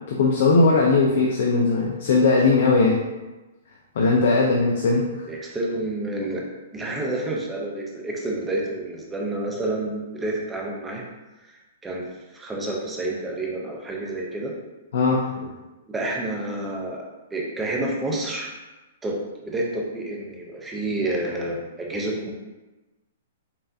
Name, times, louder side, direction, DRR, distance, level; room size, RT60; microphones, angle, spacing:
voice 1, 0.1-3.0 4.0-5.3 14.9-15.5, left 3 dB, 50° left, -2 dB, 0.5 m, -19 dB
voice 2, 5.3-6.4 6.7-11.0 11.5-12.1 12.3-14.5 15.9-17.0 17.3-18.5 19.0-22.3, right 2 dB, 5° right, -2 dB, 0.4 m, -29 dB
5.5 x 2.5 x 2.6 m, 1.1 s
hypercardioid pair, 180°, 0 cm